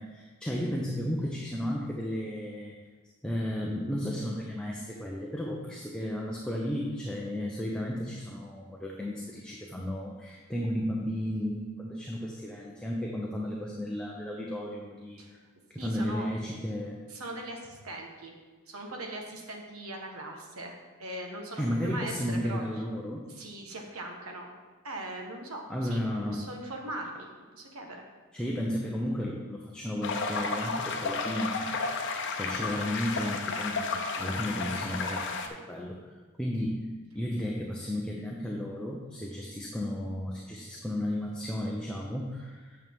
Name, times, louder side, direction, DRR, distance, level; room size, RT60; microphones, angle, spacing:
voice 1, 0.0-2.8 3.2-15.4 15.7-17.0 21.6-23.3 25.7-26.5 28.3-32.1 32.3-36.1 36.4-42.8, equal, 5° left, -3 dB, 0.7 m, -33 dB
voice 2, 15.8-16.3 17.1-18.3 18.7-22.8 23.2-24.5 24.8-26.0 26.3-27.3 27.5-28.0, right 1 dB, 75° right, 2 dB, 1.3 m, -40 dB
Water creek, 30.0-35.5, left 4 dB, 60° left, 0.7 m, -32 dB
8.8 x 6.7 x 3.6 m, 1.4 s
head